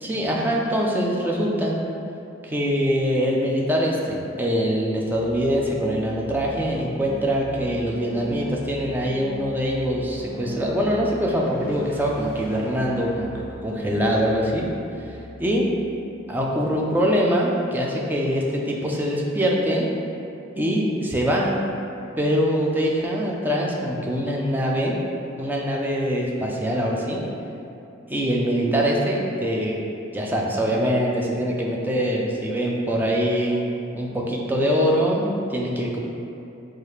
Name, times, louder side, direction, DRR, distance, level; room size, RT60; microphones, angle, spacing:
voice 1, 0.0-1.8 2.4-13.3 13.6-14.7 15.4-15.7 16.3-19.9 20.5-21.6 22.2-25.0 25.4-27.2 28.1-29.8 30.1-36.0, equal, 10° right, -2 dB, 0.4 m, -23 dB
sound 1, 4.8-16.5, right 1 dB, 45° right, 1.4 m, -39 dB
4.7 x 2.3 x 3.1 m, 2.8 s
head